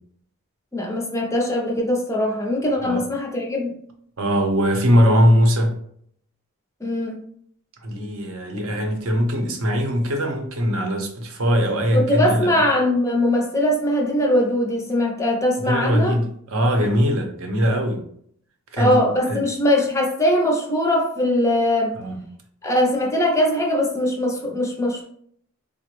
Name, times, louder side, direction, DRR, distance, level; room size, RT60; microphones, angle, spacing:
voice 1, 0.7-3.7 6.8-7.2 11.9-16.2 18.8-22.0 22.6-25.0, left 1 dB, 15° left, 0.4 m, -21 dB
voice 2, 4.2-5.8 7.8-12.5 15.6-18.0 18.7-19.4 22.0-22.2, equal, 65° right, 0.6 m, -21 dB
3.7 x 2.0 x 3.0 m
head